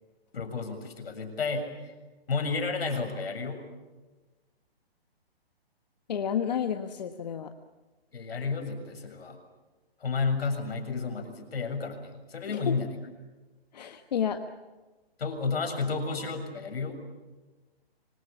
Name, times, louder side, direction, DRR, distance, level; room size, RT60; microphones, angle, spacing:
voice 1, 0.3-1.9 2.3-3.6 8.1-9.4 10.0-13.0 15.2-17.0, left 4 dB, 70° left, 6 dB, 7.1 m, -31 dB
voice 2, 6.1-7.5 12.5-12.7 13.7-14.4, left 8 dB, 40° left, 6 dB, 1.4 m, -30 dB
26.5 x 25.5 x 7.2 m, 1.2 s
hypercardioid pair, 170°, 31 cm